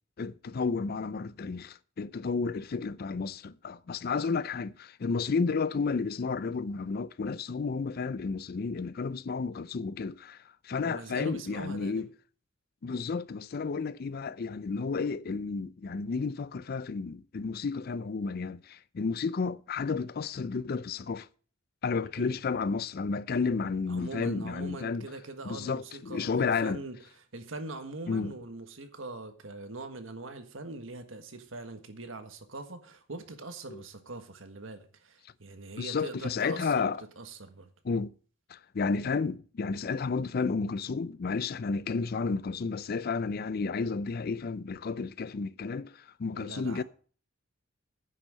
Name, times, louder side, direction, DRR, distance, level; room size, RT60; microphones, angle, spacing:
voice 1, 0.2-12.1 12.8-21.3 21.8-25.1 25.5-26.8 28.1-28.3 33.7-33.8 35.8-37.0 37.8-38.1 38.5-46.8, left 4 dB, 50° left, 0.4 m, -32 dB
voice 2, 10.7-12.1 22.2-22.4 23.9-37.7 46.3-46.8, right 2 dB, 80° right, 1.5 m, -42 dB
9.9 x 6.1 x 7.5 m
head